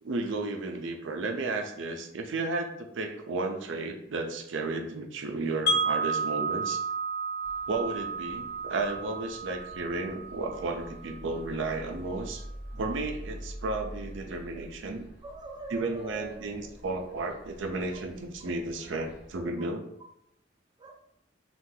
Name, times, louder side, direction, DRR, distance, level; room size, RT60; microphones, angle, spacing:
voice 1, 0.0-6.8 7.7-12.4 12.7-15.0 15.7-19.8, right 3 dB, 80° right, 4 dB, 0.5 m, -33 dB
Wind chime, 5.7-11.6, right 3 dB, 55° left, 0.4 m, -32 dB
sound 1, 7.4-19.4, equal, 80° left, 1.2 m, -46 dB
voice 2, 15.2-16.5 17.1-17.2 17.9-18.0 19.0-19.1 19.6-19.7 20.8-21.0, right 4 dB, 20° right, 2 dB, 0.4 m, -43 dB
2.7 x 2.4 x 3.7 m, 0.75 s
head